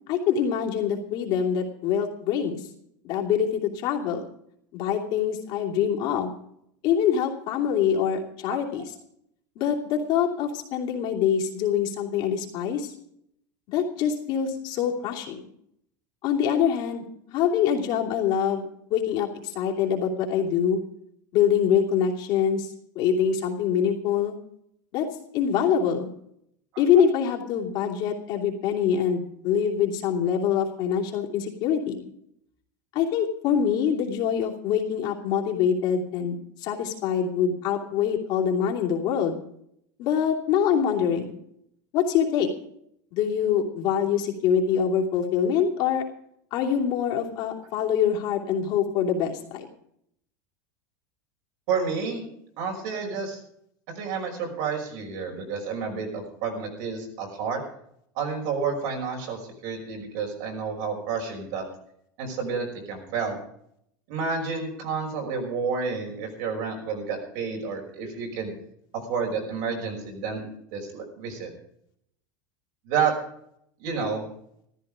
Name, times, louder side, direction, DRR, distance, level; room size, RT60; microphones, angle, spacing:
voice 1, 0.1-2.6 3.0-4.3 4.7-6.3 6.8-8.8 9.6-12.9 13.7-15.4 16.2-17.1 17.3-20.8 21.3-24.3 24.9-25.1 25.3-26.1 26.8-32.0 32.9-39.4 40.0-41.3 41.9-42.5 43.1-46.0 46.5-49.7, left 8 dB, 50° left, -1 dB, 2.8 m, -24 dB
voice 2, 8.5-8.9 51.7-52.2 52.6-53.4 53.9-57.6 58.2-61.6 62.2-63.4 64.1-68.5 68.9-70.4 70.7-71.5 72.8-73.1 73.8-74.2, right 5 dB, 60° right, 1 dB, 5.8 m, -30 dB
14.5 x 13.5 x 5.0 m, 0.71 s
supercardioid pair, 150°, 10 cm